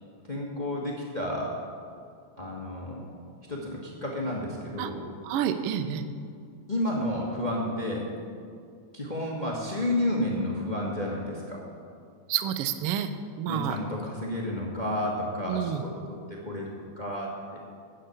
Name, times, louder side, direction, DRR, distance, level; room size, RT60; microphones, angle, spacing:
voice 1, 0.3-1.5 2.4-3.0 3.5-5.0 6.7-8.0 8.9-11.6 13.5-17.6, left 1 dB, 30° left, -3 dB, 0.8 m, -31 dB
voice 2, 5.2-6.0 12.3-13.1 13.4-13.8 15.5-15.8, right 10 dB, 90° right, 10 dB, 1.2 m, -29 dB
10.5 x 7.9 x 8.1 m, 2.3 s
omnidirectional pair, 3.5 m